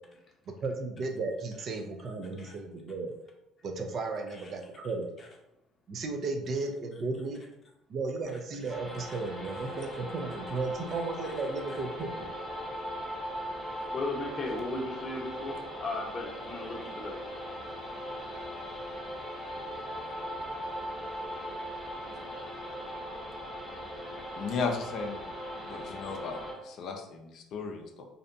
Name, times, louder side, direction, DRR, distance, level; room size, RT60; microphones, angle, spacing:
voice 1, 0.5-3.1 3.6-5.1 5.9-7.4 7.9-12.3, right 3 dB, 50° right, 4 dB, 0.4 m, -34 dB
sound 1, 8.7-26.5, equal, 5° right, 0.8 m, -39 dB
voice 2, 13.9-17.2, left 2 dB, 40° left, -1 dB, 0.7 m, -36 dB
voice 3, 24.4-25.3 25.6-28.0, left 4 dB, 60° left, 3 dB, 0.4 m, -35 dB
2.6 x 2.1 x 2.5 m, 0.88 s
supercardioid pair, 80°, 0 cm